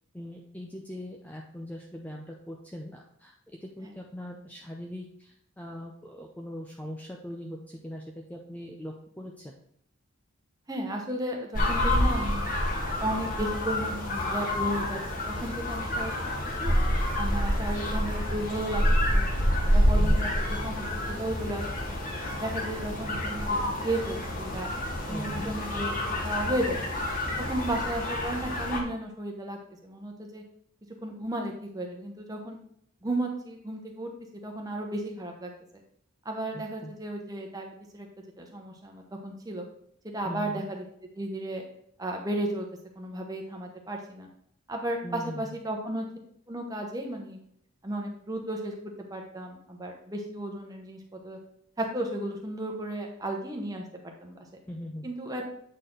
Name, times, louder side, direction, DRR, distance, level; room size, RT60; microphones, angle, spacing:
voice 1, 0.1-3.3 3.6-8.0 8.3-9.5 20.0-20.2 25.1-25.5 36.5-36.9 40.2-40.6 45.0-45.6 54.7-55.1, equal, 10° left, 0 dB, 0.5 m, -40 dB
voice 2, 10.7-12.5 13.0-15.0 15.3-16.1 16.4-16.7 17.2-18.8 19.1-19.3 19.6-22.0 22.4-24.7 25.1-27.0 27.4-30.4 31.0-32.6 33.0-34.1 34.4-35.5 36.2-38.1 38.4-39.7 40.0-40.8 41.1-41.6 42.0-42.7 43.0-44.3 44.7-46.1 46.5-47.4 47.8-48.7 49.1-51.4 51.8-54.4 55.0-55.4, right 1 dB, 15° right, 2 dB, 1.0 m, -34 dB
sound 1, 11.5-28.8, left 1 dB, 40° left, 1.2 m, -28 dB
8.2 x 4.3 x 3.8 m, 0.68 s
head